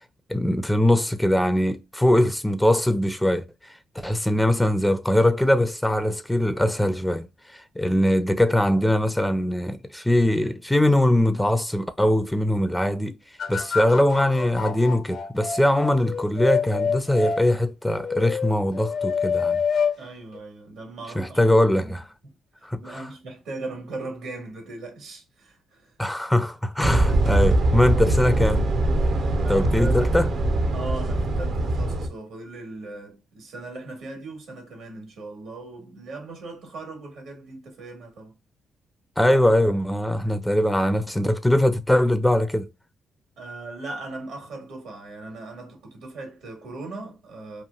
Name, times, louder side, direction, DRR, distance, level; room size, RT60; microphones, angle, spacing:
voice 1, 0.3-3.4 4.0-7.3 7.5-13.2 13.5-19.6 21.2-22.0 22.6-23.0 26.0-28.6 29.5-30.3 39.2-42.7, left 1 dB, 5° left, 0.4 m, -21 dB
sound 1, 13.4-17.4 18.0-20.0 20.3-20.4, left 6 dB, 65° left, 0.5 m, -27 dB
voice 2, 20.0-22.0 22.2-26.0 29.4-30.3 30.7-38.4 43.4-47.6, right 2 dB, 75° right, 1.4 m, -38 dB
sound 2, 26.8-32.1, right 2 dB, 60° right, 0.6 m, -22 dB
3.0 x 2.4 x 2.3 m
cardioid pair, 80°, 0 cm